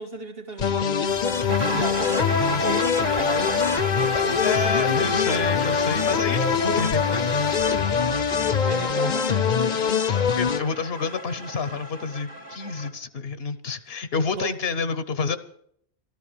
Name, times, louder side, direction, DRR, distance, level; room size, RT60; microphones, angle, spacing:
voice 1, 0.0-5.2 8.7-9.6 14.4-14.6, right 3 dB, 65° right, 5 dB, 2.2 m, -37 dB
sound 1, 0.6-10.6, left 6 dB, 50° left, 0.9 m, -23 dB
sound 2, 1.1-8.6, left 3 dB, 25° left, 0.7 m, -39 dB
sound 3, 1.5-12.9, right 1 dB, 45° right, 1.8 m, -33 dB
voice 2, 4.4-7.4 10.2-15.4, left 4 dB, 75° left, 13 dB, 1.2 m, -29 dB
13.5 x 13.0 x 6.8 m, 0.67 s
omnidirectional pair, 1.1 m